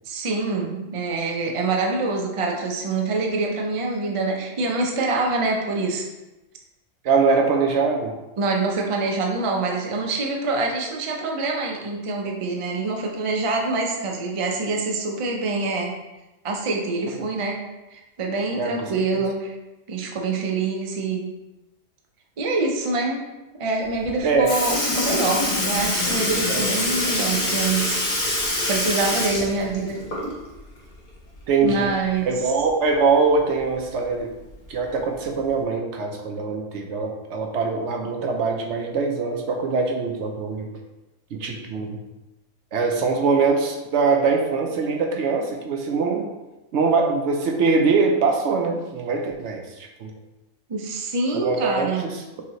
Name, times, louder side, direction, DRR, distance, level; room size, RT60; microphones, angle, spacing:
voice 1, 0.1-6.1 8.4-15.9 16.4-17.6 17.9-19.5 19.9-21.3 22.4-23.2 23.6-28.0 28.7-30.0 31.6-32.3 50.7-52.1, right 3 dB, 45° right, 0 dB, 0.4 m, -25 dB
voice 2, 7.0-8.1 18.6-19.2 24.2-24.5 26.5-26.6 31.5-31.9 32.3-34.3 34.7-40.7 41.3-42.0 42.7-46.3 46.7-50.1 51.3-52.2, right 4 dB, 65° right, 2 dB, 0.8 m, -23 dB
Sink (filling or washing) / Liquid, 24.0-24.1 24.5-30.6 30.9-31.0 32.6-32.7 33.6-33.7 34.5-34.7 35.5-35.6, left 1 dB, 85° left, 1.5 m, -25 dB
5.7 x 2.8 x 3.0 m, 1.0 s
omnidirectional pair, 1.4 m